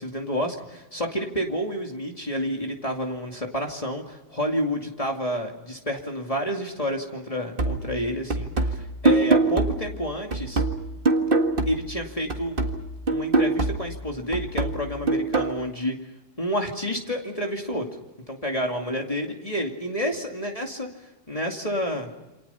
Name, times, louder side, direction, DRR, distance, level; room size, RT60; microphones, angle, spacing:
voice 1, 0.0-10.6 11.7-12.6 13.1-16.0 16.4-17.9 18.3-22.1, equal, 25° left, 1 dB, 2.5 m, -29 dB
sound 1, 7.6-12.0 12.3-15.6, right 3 dB, 45° right, 2.0 m, -24 dB
28.5 x 27.0 x 5.7 m, 1.1 s
omnidirectional pair, 1.3 m